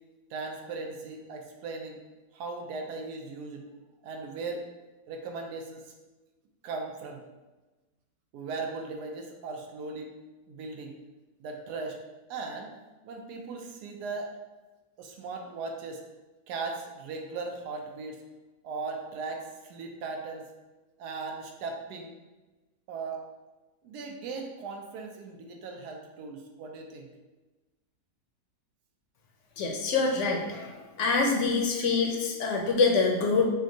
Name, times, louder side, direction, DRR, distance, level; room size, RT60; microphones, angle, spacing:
voice 1, 0.3-2.0 2.3-3.7 4.0-4.6 5.1-5.8 6.6-7.2 8.3-10.1 10.5-10.9 11.4-12.0 12.3-12.7 13.0-14.4 15.0-16.0 16.5-18.2 18.6-20.4 21.0-22.1 22.9-23.2 23.8-27.1, right 4 dB, 85° right, 2 dB, 1.2 m, -38 dB
voice 2, 29.6-33.5, left 4 dB, 65° left, 1 dB, 0.8 m, -25 dB
6.1 x 2.2 x 2.7 m, 1.1 s
omnidirectional pair, 1.7 m